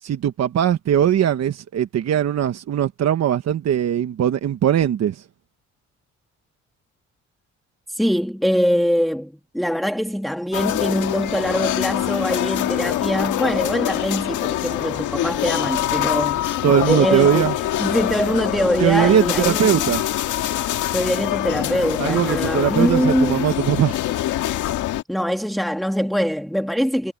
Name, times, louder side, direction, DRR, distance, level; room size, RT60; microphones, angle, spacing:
voice 1, 0.0-5.2 16.6-17.5 18.8-20.0 22.0-24.0, right 10 dB, 60° right, 1.2 m, -20 dB
voice 2, 7.9-16.5 16.9-17.5 17.8-19.9 20.9-23.5 25.1-27.1, equal, ahead, 1.9 m, -23 dB
sound 1, 10.5-25.0, left 13 dB, 85° left, 1.7 m, -24 dB
cardioid pair, 90°, 30 cm